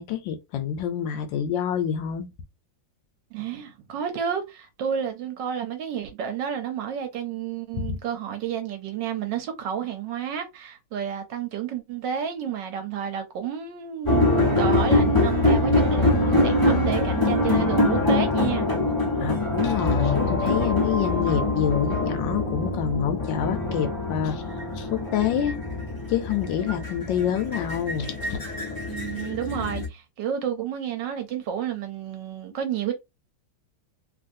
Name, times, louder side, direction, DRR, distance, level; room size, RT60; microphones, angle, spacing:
voice 1, 0.0-2.3 7.8-8.0 19.1-24.4 24.8-25.6 26.1-28.4, left 9 dB, 75° left, 1.2 m, -27 dB
voice 2, 3.3-18.7 28.8-32.9, right 8 dB, 70° right, 1.2 m, -30 dB
sound 1, 14.1-29.9, left 2 dB, 25° left, 0.5 m, -24 dB
sound 2, 20.0-24.4, left 3 dB, 45° left, 0.9 m, -33 dB
3.1 x 2.6 x 2.6 m
omnidirectional pair, 2.2 m